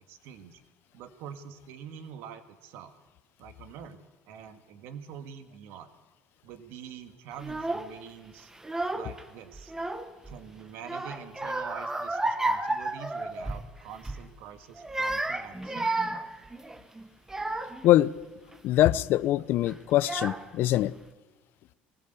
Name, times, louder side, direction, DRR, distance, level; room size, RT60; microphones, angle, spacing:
voice 1, 0.1-0.6 0.9-2.9 3.4-4.0 4.3-5.9 6.4-8.5 8.9-9.7 10.3-15.9 19.4-19.6, right 8 dB, 75° right, 1.9 m, -45 dB
Child speech kid speaking / Crying sobbing, 7.4-7.9 8.5-9.2 9.5-10.4 10.8-13.7 14.0-14.3 14.8-17.9 18.5-18.9 19.7-19.8 20.0-20.7, right 2 dB, 10° right, 1.3 m, -32 dB
voice 2, 18.6-20.9, left 14 dB, 60° left, 0.6 m, -23 dB
20.0 x 16.0 x 8.2 m
cardioid pair, 110°, 4 cm